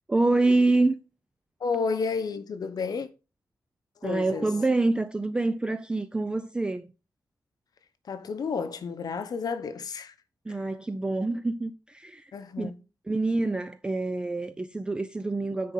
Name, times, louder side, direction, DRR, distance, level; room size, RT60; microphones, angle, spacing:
voice 1, 0.1-0.9 4.0-6.9 10.5-12.3 12.6-12.7 13.1-15.7, right 2 dB, 15° right, 0.3 m, -26 dB
voice 2, 1.6-3.1 4.0-4.5 8.1-10.1 12.3-12.8, left 5 dB, 60° left, 0.8 m, -31 dB
9.6 x 4.2 x 3.8 m
wide cardioid pair, 175°, 7 cm